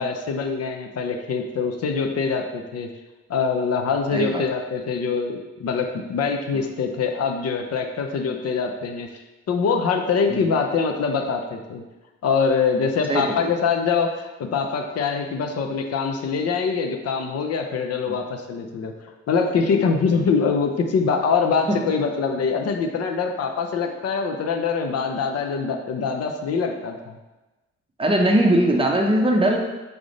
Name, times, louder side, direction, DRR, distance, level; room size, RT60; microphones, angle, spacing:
voice 1, 0.0-2.9 3.3-11.8 12.2-18.9 19.3-27.2, left 5 dB, 55° left, 3 dB, 0.6 m, -24 dB
voice 2, 4.1-4.4 6.5-6.7 10.3-10.5 13.1-13.4 18.1-18.2 20.1-20.3 21.8-21.9 28.0-29.6, right 1 dB, 20° right, 1 dB, 0.6 m, -20 dB
3.7 x 3.4 x 3.9 m, 1.1 s
cardioid pair, 90°, 30 cm